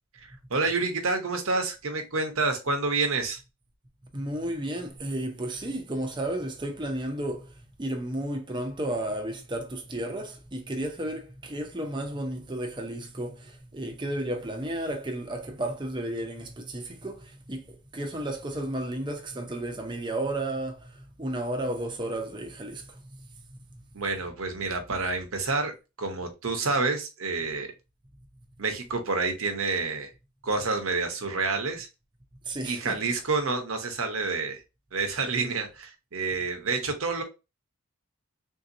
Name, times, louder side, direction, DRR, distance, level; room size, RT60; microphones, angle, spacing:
voice 1, 0.2-3.4 23.9-25.7 26.0-27.7 28.6-30.1 30.4-31.9 32.6-34.6 34.9-37.2, right 3 dB, 65° right, 0.8 m, -28 dB
voice 2, 4.1-7.5 7.8-23.0 32.4-33.0, right 1 dB, 20° right, 0.6 m, -33 dB
3.7 x 2.7 x 2.6 m
head